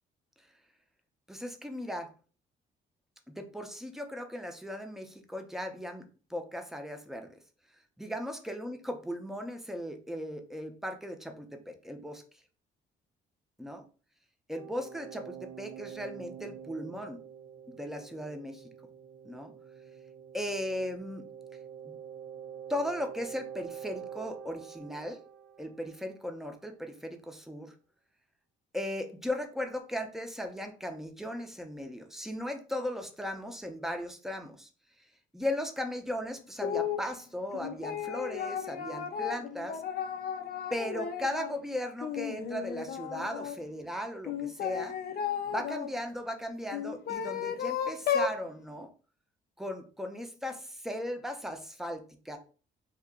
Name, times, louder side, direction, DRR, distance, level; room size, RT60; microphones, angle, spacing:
voice 1, 1.3-2.1 3.4-6.0 6.3-7.3 8.0-12.2 13.6-13.8 14.5-17.2 17.7-18.6 19.2-19.5 20.3-21.3 21.8-21.9 22.7-25.2 25.6-27.7 28.7-34.7 35.3-39.8 40.7-44.9 45.5-48.9 49.6-52.4, left 1 dB, ahead, 6 dB, 0.6 m, -37 dB
sound 1, 14.5-26.2, right 8 dB, 75° right, 0.5 m, -46 dB
sound 2, 36.6-37.0 37.5-41.6 42.0-43.5 44.2-45.9 46.7-48.4, left 8 dB, 50° left, 0.5 m, -34 dB
2.8 x 2.4 x 3.5 m, 0.38 s
cardioid pair, 90°, 20 cm